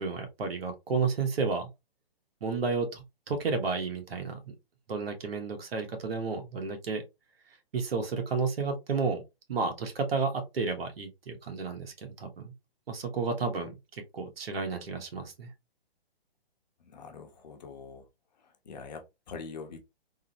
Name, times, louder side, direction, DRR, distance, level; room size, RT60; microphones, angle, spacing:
voice 1, 0.0-1.7 2.4-4.4 4.9-7.0 7.7-9.2 9.5-12.5 12.9-15.5, right 4 dB, 70° right, 1.2 m, -32 dB
voice 2, 16.8-18.0 18.6-19.8, left 5 dB, 45° left, 0.8 m, -43 dB
3.6 x 2.0 x 2.8 m
hypercardioid pair, 160°, 31 cm